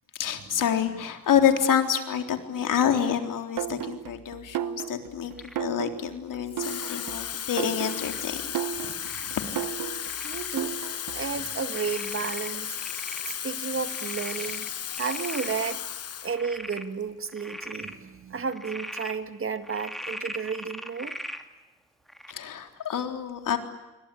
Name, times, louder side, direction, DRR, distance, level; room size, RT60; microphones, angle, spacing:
voice 1, 0.1-5.3 5.6-8.4 8.8-8.9 14.3-14.6 22.3-23.6, left 8 dB, 70° left, 6 dB, 3.8 m, -27 dB
sound 1, 3.6-11.4, right 10 dB, 70° right, 1.1 m, -35 dB
Frog, 5.4-5.7 6.6-7.0 7.8-8.2 9.0-9.5 10.0-10.5 11.0-11.1 11.7-13.4 13.7-15.7 16.2-16.9 17.3-17.9 18.5-19.2 19.6-21.4 22.1-22.3, equal, ahead, 2.6 m, -40 dB
Water tap faucet / Fill (with liquid), 6.5-16.4 16.8-17.0, left 9 dB, 45° left, 0.9 m, -35 dB
voice 2, 10.2-10.8 11.1-12.8 13.4-14.7 15.0-16.0 16.2-21.2, right 5 dB, 40° right, 10 dB, 2.0 m, -32 dB
28.0 x 24.0 x 8.5 m, 1.0 s
cardioid pair, 115°, 34 cm